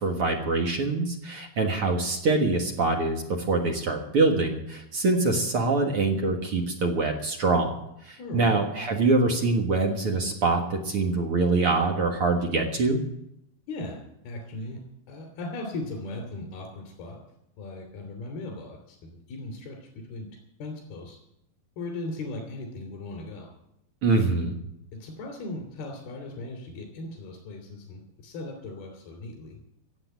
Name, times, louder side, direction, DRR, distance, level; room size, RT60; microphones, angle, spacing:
voice 1, 0.0-7.7 8.0-13.0 24.0-24.5, right 3 dB, 50° right, 2 dB, 1.8 m, -24 dB
voice 2, 8.2-8.6 13.7-14.0 14.2-14.8 15.1-17.2 17.6-19.8 20.1-20.3 20.6-21.2 21.8-23.5 24.9-29.6, left 2 dB, 85° left, 1 dB, 4.9 m, -38 dB
15.5 x 8.0 x 9.2 m, 0.79 s
omnidirectional pair, 4.3 m